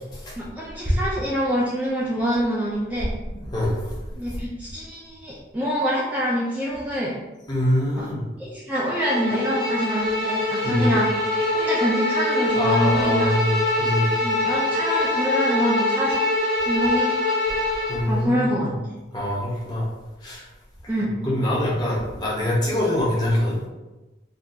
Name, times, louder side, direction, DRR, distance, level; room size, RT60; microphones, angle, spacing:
voice 1, 0.4-3.1 4.2-7.1 8.0-8.1 8.4-11.1 11.5-13.4 14.2-16.3 16.6-17.1 18.1-18.7 20.9-21.1, equal, 10° right, -7 dB, 0.3 m, -25 dB
voice 2, 3.4-3.9 7.5-8.2 10.6-11.0 12.5-14.1 17.9-18.7 19.1-19.9 20.2-20.5 21.1-23.6, left 1 dB, 20° left, -6 dB, 0.8 m, -24 dB
Bowed string instrument, 8.9-18.0, left 2 dB, 50° right, 0.7 m, -24 dB
3.6 x 2.3 x 2.7 m, 1.1 s
head